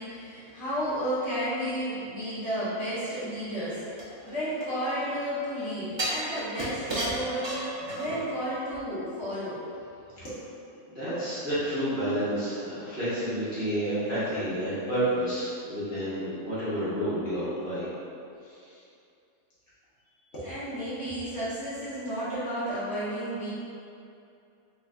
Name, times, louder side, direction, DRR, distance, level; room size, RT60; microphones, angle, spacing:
voice 1, 0.0-9.6 10.2-10.4 20.3-23.5, equal, 50° left, -12 dB, 1.1 m, -32 dB
sound 1, 4.0-5.1 6.0-8.3 8.7-8.8, right 1 dB, 40° right, 0.3 m, -33 dB
voice 2, 10.9-17.9 18.4-18.8, right 1 dB, 5° right, -13 dB, 0.8 m, -30 dB
3.9 x 3.3 x 2.3 m, 2.6 s
omnidirectional pair, 1.7 m